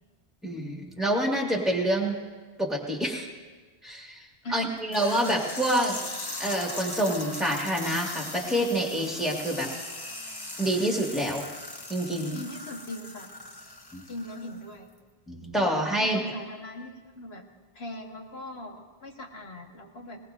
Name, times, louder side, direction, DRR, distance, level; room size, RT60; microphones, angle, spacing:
voice 1, 0.4-2.2 2.6-3.3 3.8-4.2 4.5-6.0 6.4-9.7 10.6-11.4 11.9-12.4 13.9-14.0 15.3-16.2, right 1 dB, ahead, -1 dB, 2.0 m, -27 dB
sound 1, 4.9-14.7, left 2 dB, 25° left, 0.8 m, -39 dB
voice 2, 12.3-13.3 14.1-14.9 16.0-17.4 17.7-20.2, left 1 dB, 80° left, 2 dB, 1.7 m, -40 dB
19.5 x 19.5 x 2.7 m, 1.3 s
omnidirectional pair, 1.0 m